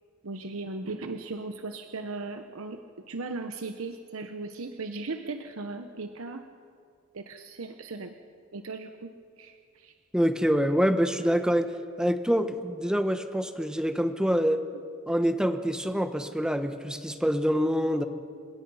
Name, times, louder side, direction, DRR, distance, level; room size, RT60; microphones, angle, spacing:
voice 1, 0.2-2.8 3.1-6.4 7.1-8.1 8.5-9.1 9.4-9.9, right 3 dB, 90° right, 7 dB, 0.9 m, -37 dB
voice 2, 10.1-11.7 12.0-14.6 15.1-18.0, equal, 5° right, 9 dB, 1.0 m, -26 dB
29.0 x 17.5 x 5.5 m, 2.2 s
head